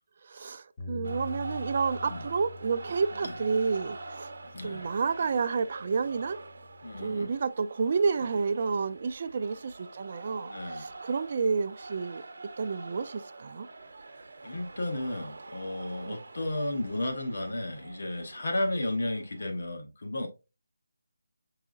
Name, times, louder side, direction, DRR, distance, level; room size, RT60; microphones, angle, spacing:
voice 1, 0.2-4.3 4.6-6.4 7.0-12.2 12.6-13.7 16.0-16.2, right 5 dB, 40° right, 0.4 m, -30 dB
Bass guitar, 0.8-5.2 5.9-7.0, left 4 dB, 25° left, 1.0 m, -45 dB
sound 1, 1.0-19.6, right 2 dB, 65° right, 0.8 m, -45 dB
voice 2, 4.5-4.9 6.8-7.3 10.5-10.9 14.4-20.3, left 1 dB, 65° left, 1.0 m, -33 dB
4.8 x 3.7 x 2.4 m
figure-of-eight pair, 165°, 0 cm